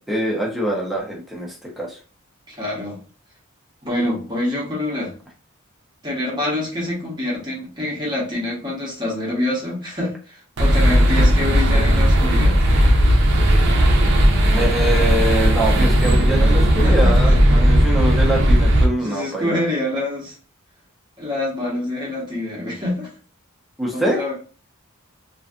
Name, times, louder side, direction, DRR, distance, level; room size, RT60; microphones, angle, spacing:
voice 1, 0.1-2.0 14.5-19.6 23.8-24.2, right 1 dB, ahead, -3 dB, 0.7 m, -24 dB
voice 2, 2.5-3.0 3.8-5.1 6.0-12.6 15.7-15.8 16.8-17.4 19.0-20.3 21.2-23.1 23.9-24.3, left 1 dB, 20° right, -4 dB, 0.9 m, -26 dB
sound 1, 10.6-18.9, equal, 55° right, 0.6 m, -15 dB
2.5 x 2.3 x 2.4 m, 0.36 s
head